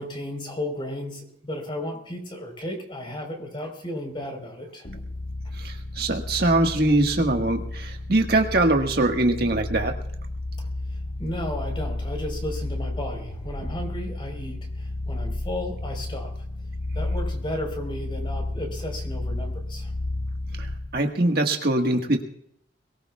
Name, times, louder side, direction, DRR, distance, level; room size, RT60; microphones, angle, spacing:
voice 1, 0.0-4.9 10.6-16.3 16.9-19.9, left 1 dB, 25° left, 3 dB, 4.1 m, -34 dB
sound 1, 4.8-21.0, left 2 dB, 50° left, 1.3 m, -32 dB
voice 2, 5.5-9.9 20.6-22.2, right 2 dB, 55° right, 3 dB, 1.6 m, -22 dB
22.5 x 19.0 x 2.4 m, 0.68 s
head